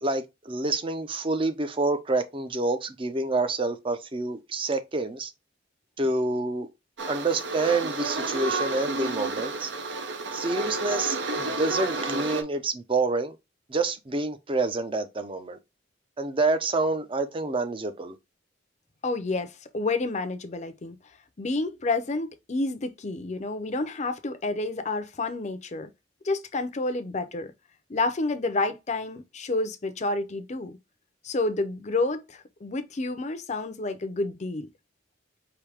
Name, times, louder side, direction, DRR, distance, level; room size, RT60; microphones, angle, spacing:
voice 1, 0.0-5.3 6.0-6.7 7.1-9.7 10.3-13.4 13.7-15.6 16.2-18.1, right 3 dB, 30° right, 0.6 m, -27 dB
sound 1, 7.0-12.4, right 3 dB, 65° right, 0.8 m, -31 dB
voice 2, 19.0-20.9 21.4-25.9 26.2-27.5 27.9-30.8 31.2-34.7, left 2 dB, 40° left, 0.6 m, -29 dB
4.8 x 2.8 x 3.4 m
head